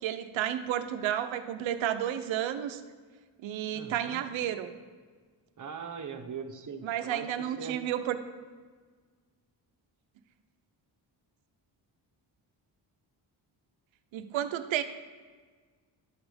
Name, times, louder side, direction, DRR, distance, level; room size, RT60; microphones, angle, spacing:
voice 1, 0.0-2.8 3.4-4.7 6.8-8.2 14.1-14.8, right 11 dB, 85° right, 10 dB, 0.8 m, -31 dB
voice 2, 3.7-4.2 5.6-7.8, right 6 dB, 40° right, 6 dB, 1.2 m, -41 dB
11.5 x 6.1 x 5.2 m, 1.5 s
cardioid pair, 65°, 46 cm